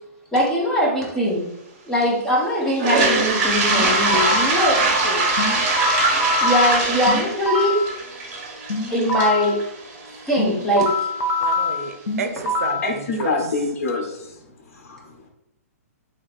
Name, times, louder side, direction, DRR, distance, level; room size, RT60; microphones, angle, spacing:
voice 1, 0.3-1.5 1.9-5.2 6.4-7.8 8.9-9.6 10.3-11.1, equal, 5° left, -4 dB, 0.7 m, -21 dB
Toilet flush, 2.7-10.6, right 3 dB, 40° right, 1.3 m, -22 dB
sound 1, 3.7-4.5 5.4-7.9 8.7-9.5 10.4-12.9, left 2 dB, 85° left, 0.9 m, -24 dB
voice 2, 11.4-13.4, right 5 dB, 65° right, 7 dB, 0.6 m, -31 dB
voice 3, 12.8-14.4 14.7-15.3, left 3 dB, 60° left, 3 dB, 1.0 m, -26 dB
3.2 x 2.6 x 4.1 m, 0.81 s
hypercardioid pair, 160°, 9 cm